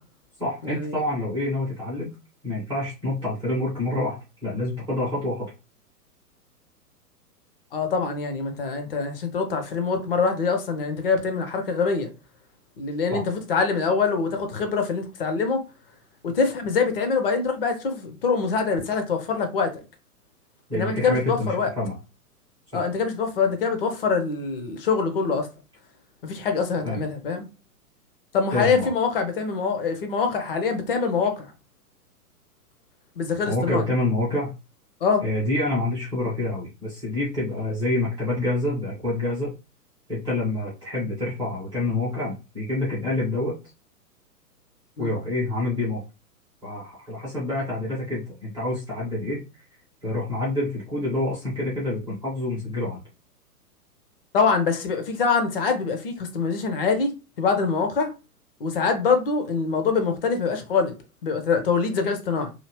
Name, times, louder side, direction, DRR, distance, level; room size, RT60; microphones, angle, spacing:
voice 1, 0.4-2.1 2.4-5.5 13.1-13.2 20.7-22.0 22.7-22.8 26.8-27.0 28.5-28.9 33.4-34.5 35.2-39.5 40.1-43.5 45.0-46.0 46.6-49.4 50.0-53.0, left 2 dB, ahead, 0.4 m, -27 dB
voice 2, 7.7-12.1 12.8-15.6 16.2-19.8 20.7-21.7 22.7-25.5 26.2-27.5 28.3-31.5 33.2-33.8 35.0-35.2 45.0-45.1 54.3-58.1 58.6-61.0 61.2-62.5, left 5 dB, 35° left, 0.7 m, -24 dB
2.8 x 2.7 x 2.9 m
figure-of-eight pair, 110°, 47 cm